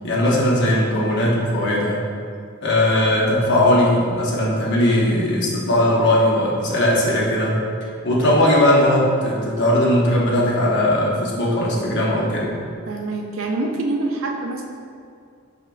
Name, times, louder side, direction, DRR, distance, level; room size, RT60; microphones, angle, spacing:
voice 1, 0.0-2.0 2.6-7.6 8.0-12.6, left 1 dB, 55° left, -5 dB, 0.9 m, -18 dB
voice 2, 12.9-14.6, right 2 dB, 70° right, 1 dB, 0.5 m, -25 dB
5.5 x 3.5 x 2.3 m, 2.3 s
head